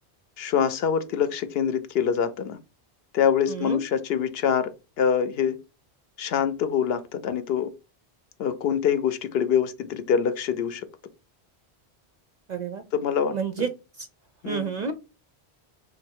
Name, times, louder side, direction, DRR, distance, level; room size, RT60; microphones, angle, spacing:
voice 1, 0.4-2.6 3.1-4.7 5.0-5.6 6.2-7.7 8.4-10.8 12.9-13.7 14.4-14.7, left 8 dB, 70° left, 0.8 m, -25 dB
voice 2, 3.5-3.8 12.5-12.8 13.3-13.7 14.0-14.1 14.4-14.9, right 6 dB, 55° right, 0.5 m, -29 dB
3.1 x 2.5 x 4.4 m
omnidirectional pair, 1.1 m